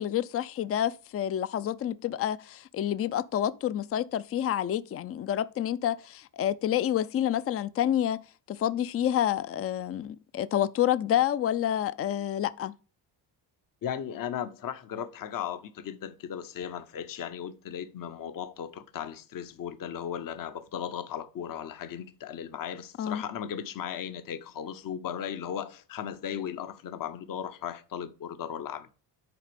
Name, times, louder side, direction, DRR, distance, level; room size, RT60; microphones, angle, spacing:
voice 1, 0.0-8.2 8.5-12.7 23.0-23.2, left 11 dB, 35° left, 0.4 m, -28 dB
voice 2, 13.8-28.9, left 9 dB, 50° left, 0.8 m, -36 dB
10.0 x 4.0 x 5.1 m
cardioid pair, 110°, 44 cm